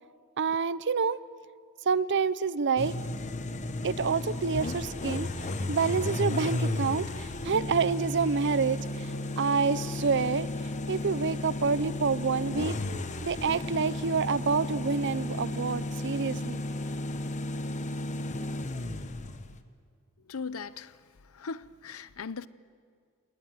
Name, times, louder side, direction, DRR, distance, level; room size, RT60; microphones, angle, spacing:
voice 1, 0.4-1.2 1.9-2.9 3.8-10.5 10.9-12.8 13.2-16.6, right 5 dB, 55° right, 0.6 m, -28 dB
sound 1, 2.8-19.6, left 2 dB, 30° left, 1.1 m, -34 dB
voice 2, 20.3-20.9 21.3-22.5, left 5 dB, 65° left, 0.7 m, -38 dB
29.0 x 19.5 x 9.2 m
head